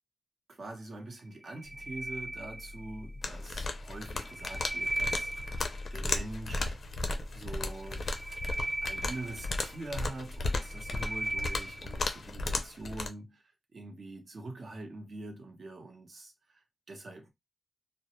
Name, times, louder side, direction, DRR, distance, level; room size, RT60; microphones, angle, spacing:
voice 1, 0.5-6.8 7.3-8.1 8.8-17.3, right 2 dB, 55° right, 0.8 m, -44 dB
sound 1, 1.4-3.1 4.0-5.9 7.9-10.0 10.4-12.0, right 1 dB, 30° right, 0.3 m, -37 dB
sound 2, 1.6-12.6, left 2 dB, 75° right, 1.3 m, -47 dB
sound 3, 3.2-13.1, left 2 dB, 55° left, 0.4 m, -35 dB
2.2 x 2.0 x 2.8 m
wide cardioid pair, 110°, 0 cm